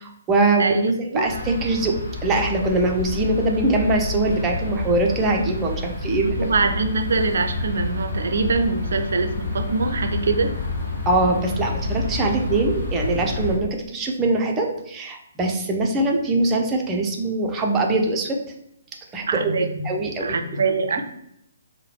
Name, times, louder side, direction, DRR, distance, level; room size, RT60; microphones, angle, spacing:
voice 1, 0.0-2.0 2.2-6.5 11.1-18.4 19.1-20.4, right 2 dB, 15° right, 1 dB, 0.6 m, -22 dB
voice 2, 0.6-1.3 6.2-10.5 19.3-19.9 20.2-21.0, right 4 dB, 55° right, 6 dB, 0.5 m, -23 dB
sound 1, 1.2-13.6, left 2 dB, 50° left, 1.5 m, -29 dB
4.7 x 2.2 x 3.1 m, 0.74 s
figure-of-eight pair, 130°, 0 cm